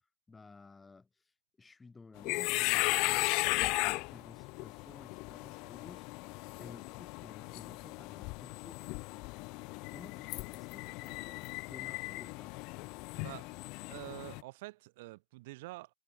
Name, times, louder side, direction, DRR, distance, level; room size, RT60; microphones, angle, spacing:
voice 1, 0.3-1.2 1.6-6.1 6.6-8.8 9.9-12.6, left 4 dB, 15° left, 7.1 m, -54 dB
sound 1, 2.2-14.4, left 27 dB, 55° left, 1.3 m, -36 dB
voice 2, 13.1-13.5 13.9-15.9, right 21 dB, 65° right, 7.6 m, -47 dB
hypercardioid pair, 110°, 0 cm